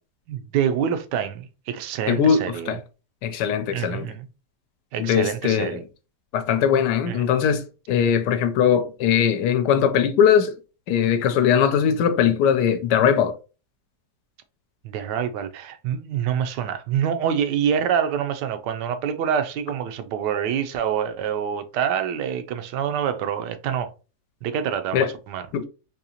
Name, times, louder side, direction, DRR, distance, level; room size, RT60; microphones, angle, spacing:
voice 1, 0.3-2.8 3.7-4.3 4.9-5.8 7.1-7.2 14.8-23.9 24.4-25.5, right 8 dB, 85° right, 1.2 m, -26 dB
voice 2, 2.1-2.8 3.2-4.1 5.0-5.8 6.3-10.5 10.9-13.3 24.9-25.1 25.5-25.7, left 8 dB, 80° left, 1.2 m, -20 dB
4.0 x 2.7 x 2.8 m
omnidirectional pair, 1.8 m